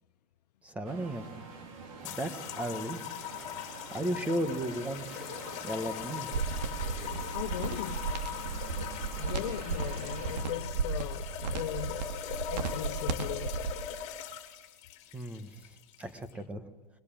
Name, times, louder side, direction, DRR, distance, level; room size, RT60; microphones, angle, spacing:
voice 1, 0.6-1.3 2.0-3.0 3.9-5.1 5.6-6.3 15.1-15.5 16.0-16.6, right 1 dB, 5° right, 1.1 m, -34 dB
sound 1, 0.8-10.4, right 4 dB, 55° right, 3.9 m, -46 dB
sound 2, 2.0-16.3, left 10 dB, 30° left, 2.6 m, -40 dB
sound 3, 6.3-13.7, right 5 dB, 75° right, 2.5 m, -34 dB
voice 2, 7.3-8.2 9.2-12.1 12.5-13.6, left 14 dB, 70° left, 0.6 m, -38 dB
21.0 x 17.5 x 7.3 m
supercardioid pair, 170°, 21 cm